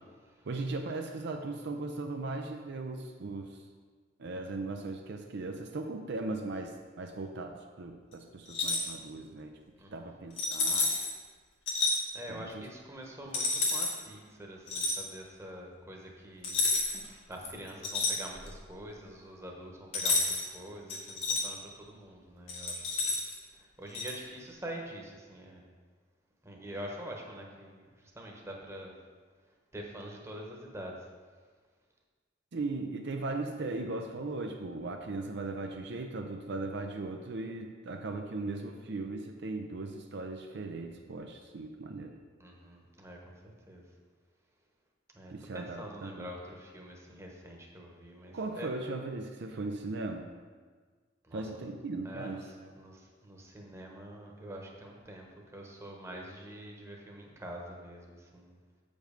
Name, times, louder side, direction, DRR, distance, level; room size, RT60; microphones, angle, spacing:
voice 1, 0.4-3.7 4.2-9.6 9.9-10.9 12.3-12.7 32.5-42.1 45.3-46.3 48.3-50.3 51.3-52.7, right 3 dB, 60° right, 3 dB, 0.5 m, -38 dB
sound 1, 8.5-8.9 10.4-11.1 11.7-12.0 13.3-13.9 14.7-15.0 16.4-17.1 17.4-18.6 19.9-20.5 20.9-21.4 22.5-23.3 23.9-24.1, left 3 dB, 80° left, 1.6 m, -30 dB
voice 2, 9.8-10.1 12.1-16.7 17.3-23.1 23.8-25.7 26.4-27.8 28.1-28.9 29.7-30.9 42.4-43.8 45.1-48.7 51.3-51.6 52.0-52.4 52.8-55.3 55.5-58.5, equal, 15° right, -1 dB, 1.1 m, -45 dB
7.6 x 5.3 x 5.1 m, 1.5 s
head